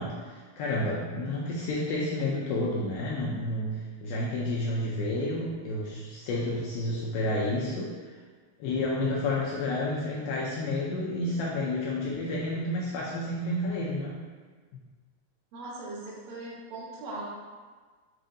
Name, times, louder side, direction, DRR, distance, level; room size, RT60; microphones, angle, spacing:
voice 1, 0.0-7.9 8.6-14.2, left 1 dB, 80° left, -5 dB, 2.2 m, -30 dB
voice 2, 15.5-17.3, right 2 dB, 65° right, -7 dB, 1.8 m, -39 dB
7.3 x 2.6 x 2.6 m, 1.5 s
omnidirectional pair, 4.6 m